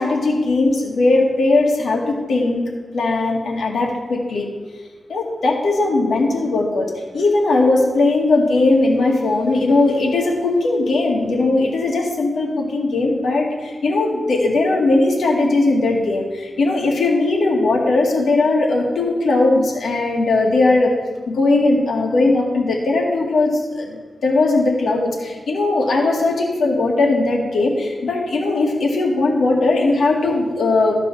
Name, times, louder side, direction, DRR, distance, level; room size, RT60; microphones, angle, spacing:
voice 1, 0.0-4.5 5.1-20.9 21.3-30.9, left 2 dB, 85° left, -1 dB, 2.1 m, -18 dB
13.5 x 5.4 x 5.6 m, 1.4 s
wide cardioid pair, 160°, 0 cm